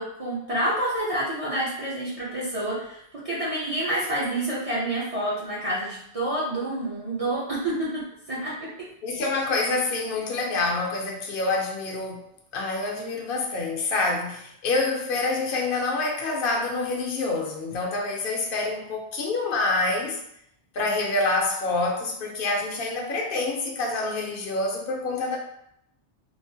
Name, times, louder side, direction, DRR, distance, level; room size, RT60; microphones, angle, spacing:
voice 1, 0.0-8.7, right 1 dB, 40° right, -8 dB, 0.6 m, -28 dB
voice 2, 9.0-12.2 12.5-20.2 20.7-25.4, left 3 dB, 60° left, 0 dB, 0.7 m, -27 dB
3.1 x 2.0 x 2.7 m, 0.74 s
omnidirectional pair, 1.1 m